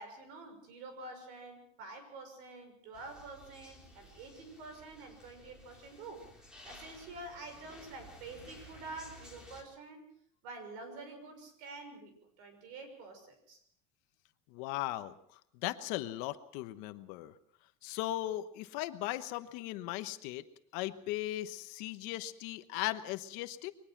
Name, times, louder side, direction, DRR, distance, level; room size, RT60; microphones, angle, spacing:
voice 1, 0.0-6.2 6.6-10.0 10.4-13.6, right 3 dB, 55° right, 7 dB, 6.3 m, -48 dB
sound 1, 2.9-9.6, left 1 dB, 5° right, 3.6 m, -55 dB
voice 2, 14.5-17.3 17.8-20.4 20.7-23.7, left 15 dB, 55° left, 11 dB, 1.1 m, -38 dB
23.0 x 19.5 x 6.0 m, 0.66 s
cardioid pair, 180°, 16 cm